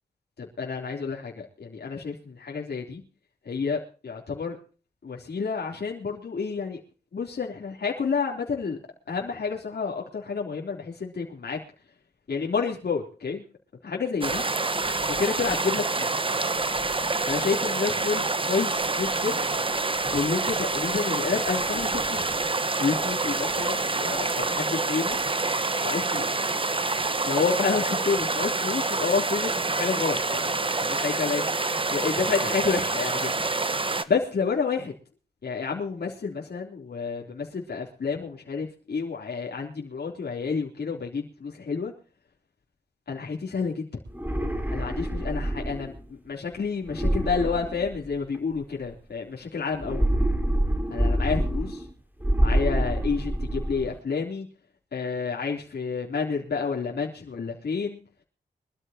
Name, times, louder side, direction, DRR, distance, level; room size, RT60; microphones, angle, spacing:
voice 1, 0.4-2.1 2.4-3.0 3.4-4.6 5.0-6.8 7.1-8.8 9.1-11.6 12.3-13.4 13.8-14.4 15.2-16.1 16.5-16.6 17.2-19.4 20.1-22.4 22.8-25.3 25.8-26.4 27.2-31.6 31.9-33.3 34.1-34.9 35.4-41.9 43.1-43.9 44.7-50.1 50.9-51.8 52.4-54.5 54.9-58.0, left 5 dB, 75° left, -1 dB, 3.5 m, -29 dB
sound 1, 14.2-34.0, right 3 dB, 30° right, 1.3 m, -27 dB
sound 2, 44.1-46.0 46.9-48.4 49.8-51.9 52.2-53.9, right 1 dB, 10° right, 4.7 m, -26 dB
24.5 x 13.5 x 2.9 m, 0.37 s
cardioid pair, 65°, 17 cm